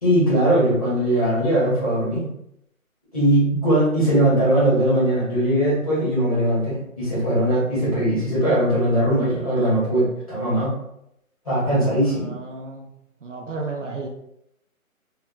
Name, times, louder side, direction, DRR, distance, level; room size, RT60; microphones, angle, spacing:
voice 1, 0.0-2.3 3.1-10.8 11.4-12.3, right 1 dB, 25° left, -9 dB, 0.9 m, -20 dB
voice 2, 12.0-12.9 13.2-14.1, right 3 dB, 60° right, 0 dB, 0.5 m, -33 dB
2.7 x 2.2 x 2.2 m, 0.78 s
hypercardioid pair, 170°, 43 cm